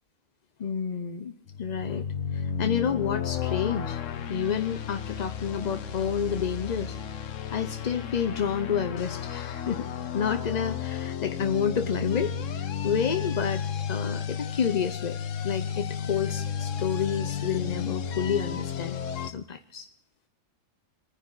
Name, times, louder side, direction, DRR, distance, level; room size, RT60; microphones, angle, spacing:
voice 1, 0.6-1.3 1.6-2.1 2.3-4.0 4.3-7.2 7.5-13.6 13.9-15.2 15.4-19.0 19.2-19.9, left 7 dB, 45° left, 9 dB, 0.6 m, -29 dB
sound 1, 1.5-19.3, left 7 dB, 75° left, 1.2 m, -33 dB
25.0 x 10.0 x 3.9 m, 0.85 s
omnidirectional pair, 1.3 m